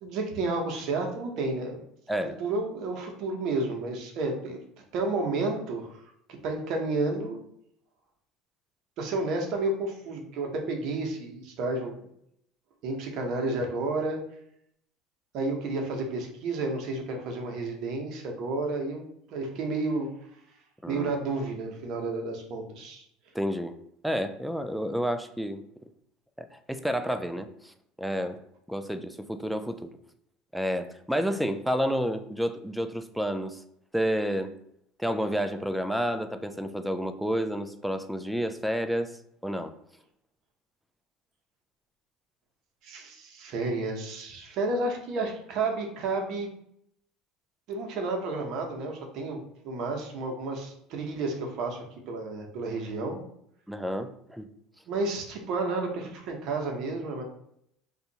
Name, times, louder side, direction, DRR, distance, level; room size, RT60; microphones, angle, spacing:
voice 1, 0.0-1.8 2.4-4.6 4.9-5.9 6.4-7.4 9.0-12.0 12.8-14.2 15.3-20.1 20.9-23.0 42.8-46.5 47.7-53.2 54.9-57.2, right 3 dB, 60° right, 2 dB, 0.8 m, -31 dB
voice 2, 2.1-2.4 20.8-21.1 23.3-23.8 24.0-25.6 26.4-27.7 28.0-28.4 28.7-29.9 30.5-33.6 33.9-34.5 35.0-39.2 39.4-39.7 53.7-54.5, equal, ahead, 8 dB, 0.3 m, -30 dB
2.7 x 2.4 x 3.9 m, 0.73 s
supercardioid pair, 100°, 0 cm